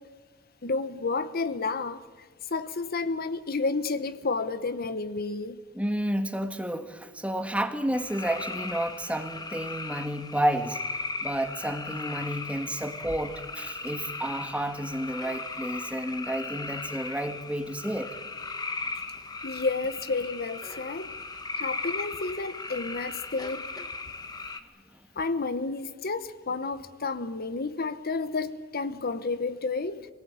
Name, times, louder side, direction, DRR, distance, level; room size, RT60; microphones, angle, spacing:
voice 1, 0.6-2.0 2.5-5.6 19.4-21.1 21.5-23.7 25.2-30.1, left 3 dB, 50° left, 0.9 m, -31 dB
voice 2, 5.7-10.8 11.2-18.1, right 1 dB, 5° right, 1.4 m, -31 dB
sound 1, 7.9-24.6, left 3 dB, 20° left, 1.3 m, -37 dB
25.5 x 19.0 x 8.8 m
head